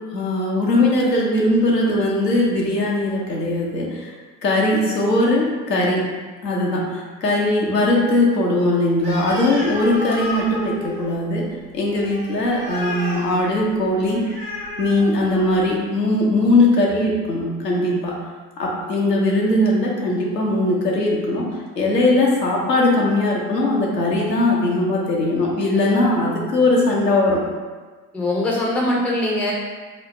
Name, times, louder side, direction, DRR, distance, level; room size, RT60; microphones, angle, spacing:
voice 1, 0.1-4.1 4.4-6.0 6.4-11.5 11.7-14.2 14.8-18.2 18.6-21.5 21.8-27.4, left 1 dB, 85° left, -3 dB, 0.7 m, -20 dB
Animal, 9.0-15.7, left 1 dB, 80° right, 1.1 m, -33 dB
voice 2, 28.1-29.5, left 1 dB, 5° left, -3 dB, 0.3 m, -21 dB
3.3 x 2.2 x 3.7 m, 1.4 s
figure-of-eight pair, 60°, 47 cm